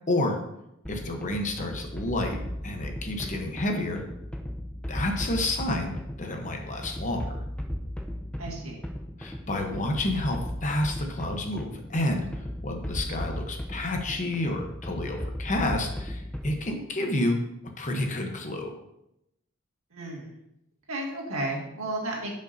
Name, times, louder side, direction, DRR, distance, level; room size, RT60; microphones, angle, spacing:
voice 1, 0.1-0.4 0.9-4.0 4.9-7.4 9.2-17.4 17.8-18.7, left 1 dB, 35° left, 3 dB, 0.9 m, -30 dB
sound 1, 0.8-16.8, equal, 5° left, 0.5 m, -36 dB
voice 2, 8.4-8.8 19.9-20.3 20.9-22.3, right 1 dB, 70° right, -2 dB, 1.9 m, -33 dB
10.5 x 5.3 x 2.7 m, 0.83 s
head